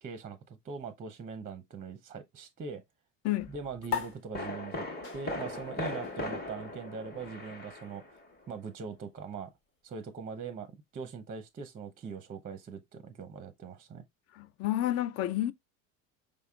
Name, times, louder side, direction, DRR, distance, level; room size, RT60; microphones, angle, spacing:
voice 1, 0.0-2.8 3.5-4.9 5.1-8.2 8.5-9.5 9.8-14.0, right 5 dB, 20° right, 0.6 m, -42 dB
sound 1, 3.4-3.6 4.3-8.4 8.7-8.8, left 1 dB, 25° left, 1.2 m, -39 dB
sound 2, 3.9-10.7, left 7 dB, 70° left, 1.9 m, -43 dB
voice 2, 14.3-15.5, left 14 dB, 40° left, 0.4 m, -30 dB
5.0 x 3.5 x 2.2 m
hypercardioid pair, 85°, 41 cm